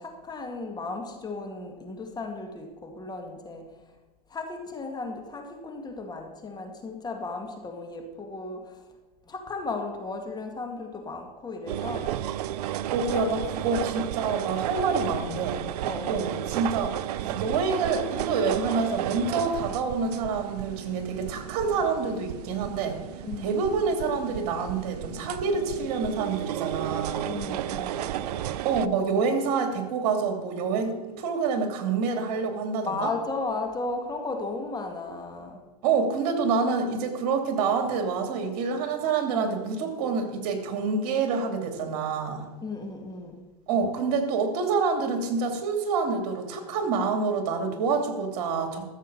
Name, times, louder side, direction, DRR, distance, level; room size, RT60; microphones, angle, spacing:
voice 1, 0.0-3.7 4.3-8.8 9.3-12.1 13.1-13.3 13.6-13.8 15.8-16.2 23.2-23.5 27.2-28.6 32.8-35.6 42.6-43.4, left 3 dB, 20° left, 4 dB, 2.0 m, -35 dB
sound 1, 11.7-28.9, right 12 dB, 80° right, 0.6 m, -33 dB
voice 2, 12.9-15.6 16.1-16.9 17.2-23.0 23.4-27.3 28.6-33.1 35.8-42.5 43.7-48.8, right 5 dB, 65° right, 6 dB, 2.7 m, -27 dB
14.0 x 7.4 x 6.9 m, 1.2 s
supercardioid pair, 115°, 20 cm